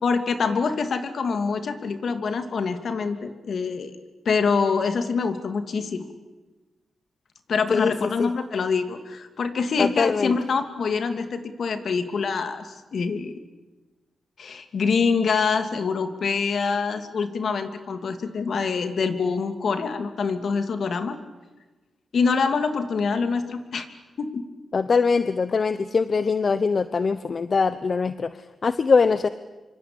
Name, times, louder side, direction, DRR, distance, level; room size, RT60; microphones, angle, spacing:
voice 1, 0.0-3.9 4.2-6.0 7.5-13.4 14.4-21.2 22.1-23.9 24.2-24.4, left 5 dB, 70° left, 8 dB, 2.9 m, -25 dB
voice 2, 9.8-10.3 24.7-28.3 28.6-29.3, left 5 dB, 50° left, 12 dB, 1.0 m, -22 dB
26.5 x 25.0 x 8.9 m, 1.2 s
cardioid pair, 80°, 0 cm